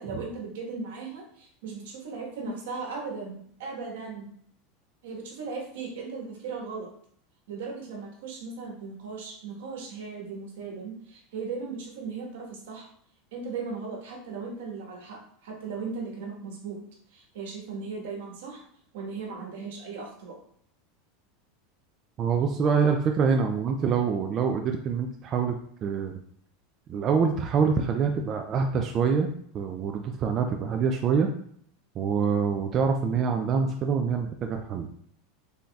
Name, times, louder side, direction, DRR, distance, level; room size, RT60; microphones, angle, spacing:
voice 1, 0.0-4.3 5.0-6.9 7.5-12.9 13.3-16.8 17.1-18.6 18.9-20.4, right 4 dB, 85° right, 0 dB, 1.3 m, -37 dB
voice 2, 22.2-26.2 26.9-31.3 32.0-34.9, right 6 dB, 30° right, 4 dB, 0.3 m, -25 dB
3.9 x 3.4 x 2.3 m, 0.63 s
supercardioid pair, 145°, 0 cm